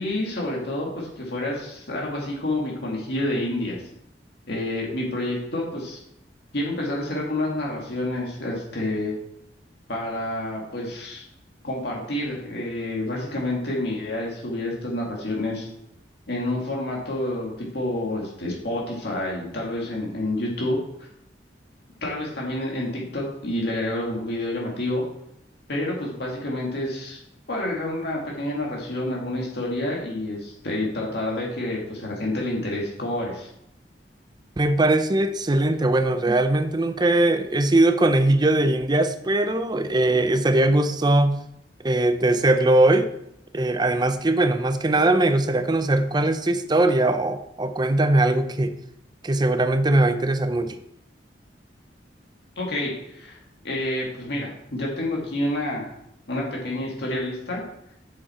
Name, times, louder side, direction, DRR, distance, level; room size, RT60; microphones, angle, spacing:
voice 1, 0.0-3.8 4.5-6.0 6.5-9.1 9.9-11.2 11.6-15.7 16.3-20.8 22.0-25.0 25.7-27.2 27.5-33.5 52.6-55.9 56.3-57.6, left 1 dB, 65° left, 2.0 m, -28 dB
voice 2, 34.6-41.4 41.8-43.1 43.5-48.7 49.2-50.8, right 2 dB, 25° right, 0.6 m, -20 dB
7.5 x 7.3 x 4.3 m
head